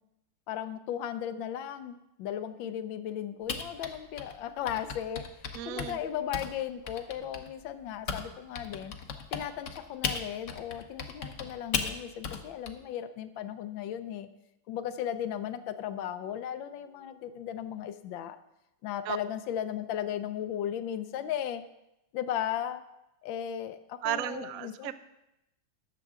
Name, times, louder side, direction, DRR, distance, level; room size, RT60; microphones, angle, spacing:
voice 1, 0.5-8.9 9.3-14.3 14.7-18.4 18.8-21.6 22.1-22.8 23.2-24.9, left 10 dB, 75° left, 10 dB, 1.4 m, -36 dB
Typing, 3.5-8.3 8.5-12.7, left 5 dB, 55° left, 0.9 m, -36 dB
voice 2, 5.5-6.0 19.0-19.2 24.0-24.9, right 13 dB, 75° right, 12 dB, 0.8 m, -34 dB
20.0 x 6.8 x 3.7 m, 0.88 s
omnidirectional pair, 2.2 m